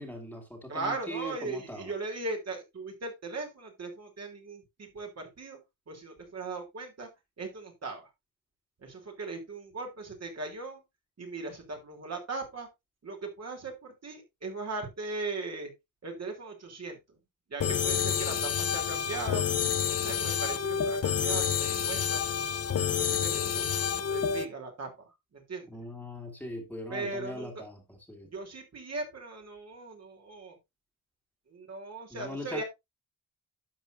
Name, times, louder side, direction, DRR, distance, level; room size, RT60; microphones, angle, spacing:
voice 1, 0.0-1.9 25.7-28.3 32.1-32.6, equal, 5° left, 2.2 m, -40 dB
voice 2, 0.7-5.6 5.9-7.1 7.4-8.1 8.8-10.8 11.2-12.7 13.0-15.7 16.0-17.2 17.5-19.4 19.8-22.2 22.8-25.8 26.9-27.6 28.2-30.6 31.5-32.6, right 3 dB, 45° right, 3.2 m, -39 dB
sound 1, 17.6-24.5, left 8 dB, 45° left, 0.8 m, -29 dB
12.0 x 7.4 x 2.6 m
wide cardioid pair, 140°, 35 cm